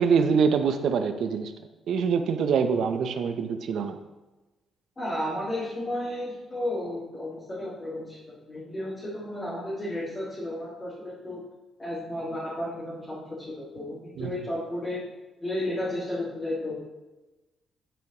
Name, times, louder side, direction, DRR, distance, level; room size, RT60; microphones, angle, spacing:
voice 1, 0.0-1.5 1.9-4.0 14.2-14.3, right 6 dB, 70° right, 8 dB, 0.6 m, -24 dB
voice 2, 5.0-11.4 11.8-15.0 15.4-16.7, left 1 dB, 25° left, -8 dB, 1.7 m, -33 dB
9.0 x 4.6 x 2.9 m, 1.1 s
cardioid pair, 90°, 0 cm